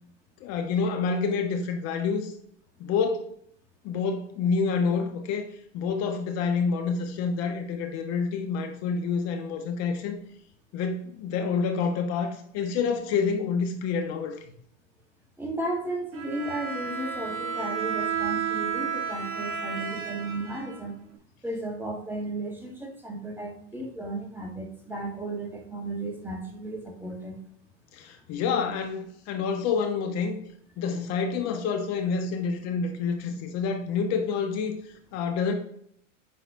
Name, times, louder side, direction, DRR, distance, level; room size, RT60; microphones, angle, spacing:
voice 1, 0.4-2.3 2.8-3.3 3.8-5.5 5.7-10.2 10.7-14.4 27.9-30.4 30.8-34.7 35.1-35.5, left 5 dB, 40° left, 5 dB, 1.2 m, -28 dB
voice 2, 15.4-21.0 21.4-27.4, right 2 dB, 5° right, -1 dB, 1.4 m, -34 dB
Bowed string instrument, 16.1-21.2, right 7 dB, 35° right, 1.3 m, -32 dB
9.3 x 4.0 x 2.7 m, 0.66 s
hypercardioid pair, 115°, 37 cm